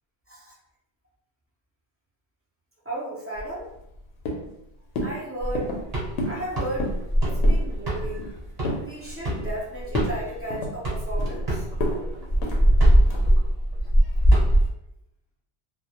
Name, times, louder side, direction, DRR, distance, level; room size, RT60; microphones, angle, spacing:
voice 1, 2.8-3.7 5.0-5.7 6.2-6.9 7.2-8.3 8.8-11.6, right 1 dB, 20° right, -6 dB, 0.3 m, -34 dB
sound 1, 3.3-4.0 4.2-4.6 5.0-5.2 5.5-5.8 6.2-6.4 6.7-7.0 7.4-7.7 8.0-8.9 9.3-9.6 9.9-10.2 10.5-11.4 11.8-12.0 12.4-12.6 13.1-13.3, left 1 dB, 70° left, 0.8 m, -30 dB
sound 2, 5.4-10.5 10.8-14.7, equal, 40° right, 0.8 m, -21 dB
2.2 x 2.0 x 2.8 m, 0.83 s
omnidirectional pair, 1.1 m